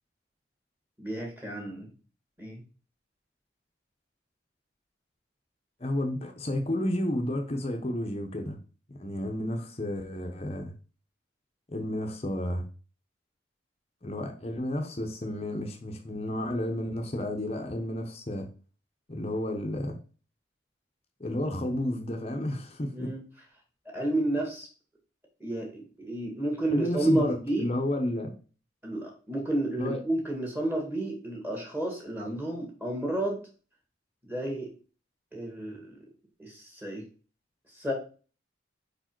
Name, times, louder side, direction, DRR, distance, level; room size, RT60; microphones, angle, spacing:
voice 1, 1.0-1.9 2.4-2.6 22.9-23.2 23.9-24.7 25.4-27.7 28.8-33.4 34.2-34.7 35.3-36.0 36.4-37.0 37.7-37.9, right 1 dB, 10° right, 1.6 m, -31 dB
voice 2, 5.8-8.6 8.9-10.7 11.7-12.6 14.0-18.5 19.1-20.0 21.2-23.1 26.7-28.3 29.8-30.0, left 1 dB, 35° left, 0.8 m, -31 dB
4.9 x 4.7 x 4.5 m
head